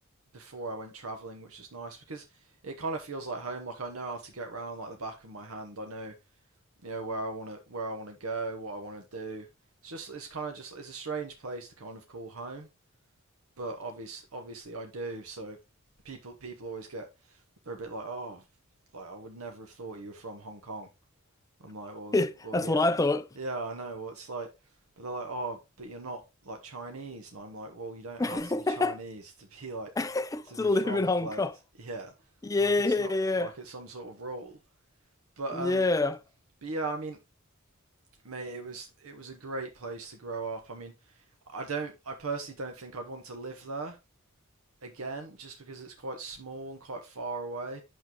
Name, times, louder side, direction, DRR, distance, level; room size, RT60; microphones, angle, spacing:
voice 1, 0.3-6.1 6.8-9.5 9.8-12.7 13.6-15.6 16.0-17.4 17.7-18.4 18.9-20.9 21.6-22.8 23.3-24.5 25.0-29.9 30.4-32.1 32.6-34.6 35.4-35.9 36.6-37.2 38.2-44.0 44.8-47.8, right 3 dB, 85° right, 1.0 m, -39 dB
voice 2, 22.1-23.3 28.2-29.0 30.0-31.5 32.4-33.5 35.5-36.2, left 2 dB, 15° left, 0.4 m, -27 dB
8.3 x 6.4 x 3.0 m
head